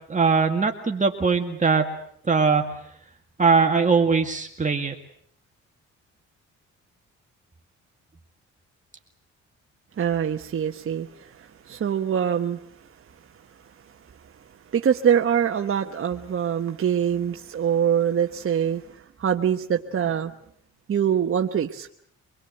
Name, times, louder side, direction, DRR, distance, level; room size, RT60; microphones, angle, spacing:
voice 1, 0.1-1.9 2.3-2.7 3.4-4.9, right 5 dB, 25° right, 3 dB, 2.1 m, -21 dB
voice 2, 10.0-12.6 14.7-20.3 20.9-21.9, right 8 dB, 45° right, 3 dB, 1.2 m, -24 dB
25.5 x 21.0 x 7.9 m, 0.68 s
cardioid pair, 90°, 30 cm